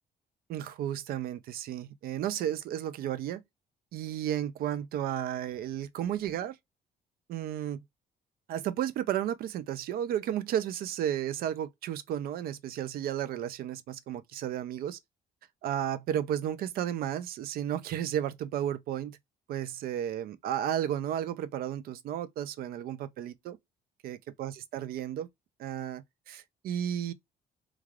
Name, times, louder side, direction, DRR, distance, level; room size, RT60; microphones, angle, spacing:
voice 1, 0.5-3.4 3.9-6.6 7.3-7.8 8.5-15.0 15.6-19.2 19.5-23.6 24.0-25.3 25.6-27.1, right 10 dB, 65° right, 0.4 m, -33 dB
3.2 x 2.3 x 2.4 m
cardioid pair, 130°, 17 cm